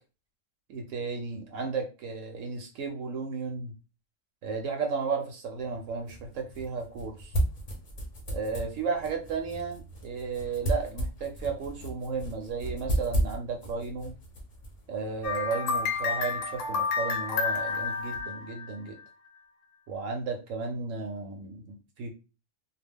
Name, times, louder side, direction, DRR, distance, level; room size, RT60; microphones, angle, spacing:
voice 1, 0.7-3.7 4.4-7.3 8.3-14.1 14.9-19.0 19.9-22.1, right 4 dB, 75° right, 3 dB, 0.9 m, -34 dB
sound 1, 5.6-15.5, right 1 dB, 45° left, 0.7 m, -34 dB
sound 2, 15.2-19.0, left 5 dB, 75° left, 0.9 m, -30 dB
2.3 x 2.2 x 3.4 m, 0.32 s
omnidirectional pair, 1.4 m